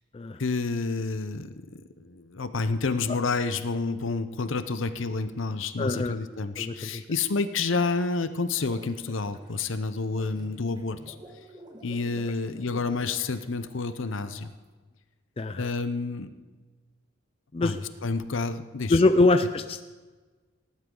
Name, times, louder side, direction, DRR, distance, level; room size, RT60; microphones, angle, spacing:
voice 1, 0.4-11.2 11.8-14.5 15.6-16.4 17.6-17.7 18.0-19.0, left 4 dB, 65° left, 11 dB, 0.7 m, -29 dB
voice 2, 5.8-6.2 6.6-6.7 15.4-15.7 17.5-17.8 18.9-19.8, left 2 dB, 25° left, 9 dB, 0.4 m, -23 dB
sound 1, 7.9-14.6, right 1 dB, 20° right, 1.4 m, -50 dB
18.5 x 11.5 x 3.9 m, 1.3 s
head